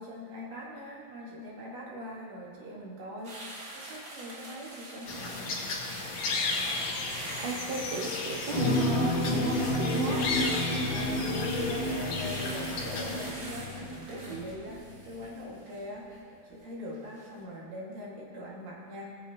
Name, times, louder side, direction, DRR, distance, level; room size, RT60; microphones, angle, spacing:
voice 1, 0.0-5.6 10.8-16.1 16.5-19.1, equal, 55° right, -5 dB, 2.9 m, -42 dB
sound 1, 3.2-16.6 16.9-17.3, right 1 dB, 40° right, 1.3 m, -44 dB
sound 2, 5.1-13.3, left 3 dB, 80° left, 3.1 m, -34 dB
voice 2, 7.4-10.3, right 3 dB, 85° right, 1 dB, 1.0 m, -34 dB
sound 3, 8.5-14.6 15.0-15.1, left 1 dB, 65° left, 2.5 m, -31 dB
20.0 x 7.3 x 2.8 m, 2.4 s
omnidirectional pair, 3.7 m